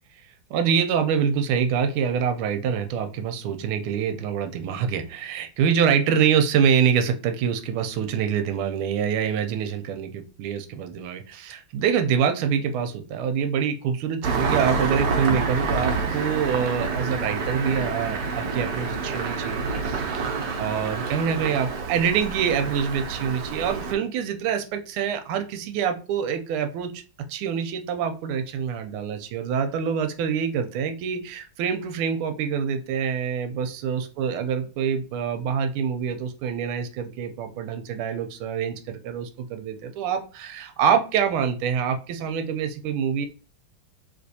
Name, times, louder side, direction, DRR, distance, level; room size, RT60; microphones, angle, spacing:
voice 1, 0.5-26.9 27.3-43.3, right 7 dB, 85° right, 7 dB, 1.5 m, -25 dB
Engine starting, 14.2-23.9, right 4 dB, 70° right, 1.2 m, -28 dB
3.3 x 3.2 x 2.7 m, 0.35 s
omnidirectional pair, 2.3 m